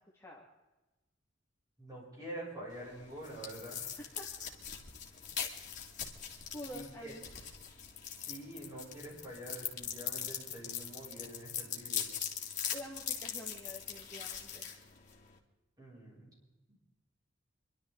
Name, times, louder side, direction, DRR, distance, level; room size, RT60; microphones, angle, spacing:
voice 1, 1.8-4.0 6.7-7.1 8.1-12.1 15.8-16.3 16.7-16.8, right 1 dB, 20° right, -5 dB, 7.6 m, -46 dB
sound 1, 2.7-15.4, left 8 dB, 40° left, 2.4 m, -41 dB
voice 2, 4.0-4.3 6.5-7.3 12.7-14.7, equal, 15° left, -3 dB, 2.1 m, -47 dB
28.0 x 12.0 x 4.0 m, 1.1 s
head